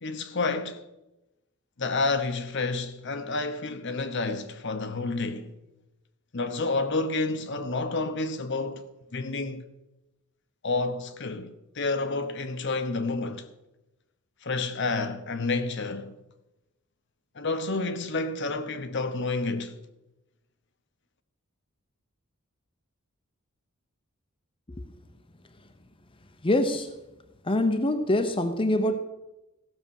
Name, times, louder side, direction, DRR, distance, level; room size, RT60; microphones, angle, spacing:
voice 1, 0.0-0.8 1.8-5.5 6.3-9.6 10.6-13.5 14.4-16.2 17.3-19.7, left 3 dB, 55° left, 0.9 m, -29 dB
voice 2, 26.4-26.9 27.4-29.0, left 1 dB, 25° left, 0.7 m, -25 dB
15.5 x 6.7 x 7.1 m
head